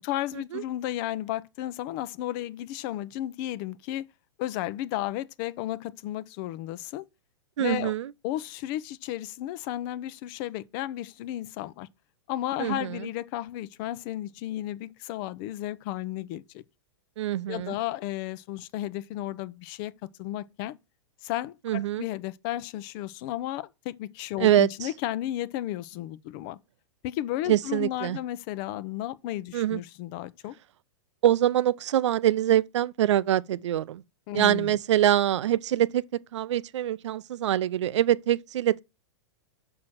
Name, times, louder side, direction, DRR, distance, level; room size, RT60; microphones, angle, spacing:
voice 1, 0.0-4.1 4.4-7.0 7.6-7.9 8.2-11.9 12.3-16.6 17.5-19.9 20.2-20.7 21.2-26.6 27.0-30.5 34.3-34.8, left 14 dB, 45° left, 0.7 m, -33 dB
voice 2, 7.6-8.1 12.6-13.0 17.2-17.8 21.7-22.0 24.4-24.7 27.5-28.2 29.5-29.8 31.2-34.0 34.3-36.0 36.3-38.8, right 12 dB, 75° right, 0.6 m, -24 dB
6.4 x 6.0 x 6.0 m
hypercardioid pair, 125°, 15 cm